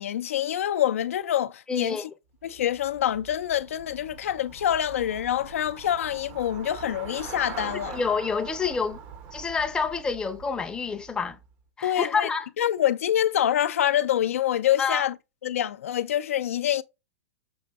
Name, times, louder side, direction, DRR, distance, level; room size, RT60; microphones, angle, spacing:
voice 1, 0.0-2.1 2.4-8.0 11.8-12.3 12.6-15.1 15.4-16.8, left 11 dB, 80° left, 0.4 m, -26 dB
voice 2, 1.7-2.1 7.9-9.0 9.3-11.4 11.8-12.5 14.8-15.1, left 5 dB, 10° left, 0.5 m, -28 dB
Traffic noise roadway noise / Bicycle, 2.4-11.6, right 7 dB, 45° right, 0.7 m, -43 dB
6.2 x 2.5 x 2.3 m
hypercardioid pair, 130°, 7 cm